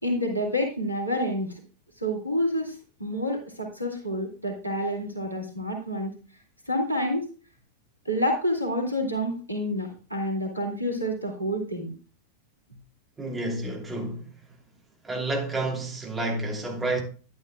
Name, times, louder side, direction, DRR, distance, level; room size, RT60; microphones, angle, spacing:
voice 1, 0.0-1.6 2.0-6.1 6.7-7.3 8.1-11.9, equal, 90° right, 2.4 m, -28 dB
voice 2, 13.2-14.4 15.0-17.0, right 2 dB, 15° right, 2.9 m, -30 dB
11.0 x 10.0 x 2.3 m
figure-of-eight pair, 90°, 0 cm